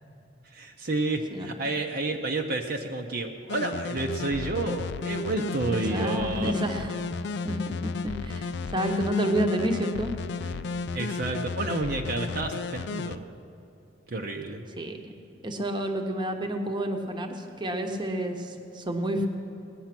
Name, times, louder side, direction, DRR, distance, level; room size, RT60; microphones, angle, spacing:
voice 1, 0.4-6.5 10.9-13.3 14.1-14.6, right 2 dB, 50° right, 2 dB, 0.7 m, -30 dB
sound 1, 3.5-13.2, left 4 dB, 60° left, 0.4 m, -33 dB
voice 2, 5.7-7.0 7.4-10.1 14.8-15.1 15.4-19.3, right 1 dB, 25° right, 4 dB, 1.0 m, -29 dB
19.0 x 9.3 x 6.0 m, 2.8 s
head